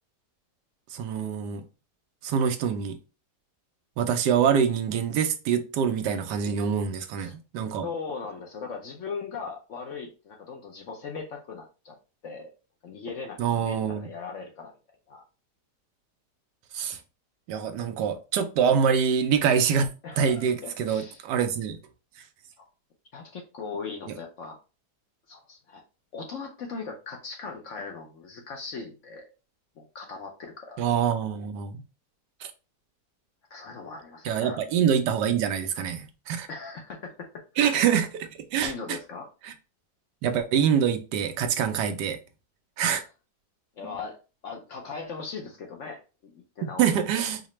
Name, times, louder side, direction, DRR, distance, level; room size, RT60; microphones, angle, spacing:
voice 1, 0.9-1.6 2.2-3.0 4.0-7.9 13.4-14.1 16.7-17.0 17.5-19.9 20.2-21.8 30.8-31.8 32.4-32.5 34.2-36.5 37.6-39.0 39.4-39.5 40.2-42.2 42.8-43.0 43.8-44.0 46.6-47.4, right 7 dB, 85° right, 1.2 m, -25 dB
voice 2, 7.8-11.9 12.2-12.5 12.8-14.8 15.1-15.2 20.0-21.2 22.6-22.7 23.1-24.6 25.3-25.8 26.1-29.3 29.8-30.8 33.5-34.6 36.5-37.8 38.6-39.3 43.8-44.2 44.4-46.9, left 5 dB, 60° left, 0.8 m, -39 dB
4.8 x 2.1 x 3.0 m
omnidirectional pair, 1.8 m